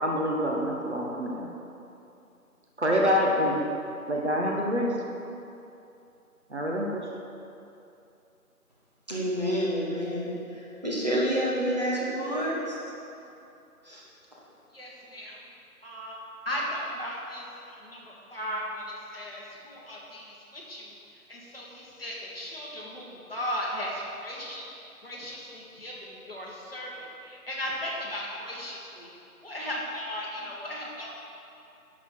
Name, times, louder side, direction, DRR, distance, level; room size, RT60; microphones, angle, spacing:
voice 1, 0.0-1.5 2.8-3.6 4.1-4.9 6.5-7.0, equal, 45° right, -1 dB, 1.2 m, -26 dB
voice 2, 9.1-12.8 13.8-14.0, equal, 30° right, -6 dB, 1.3 m, -28 dB
voice 3, 14.7-15.4 15.8-16.2 16.5-20.9 21.3-24.6 25.0-29.1 29.4-31.1, equal, 40° left, -4 dB, 1.7 m, -36 dB
10.5 x 6.8 x 4.5 m, 2.7 s
figure-of-eight pair, 170°, 45 cm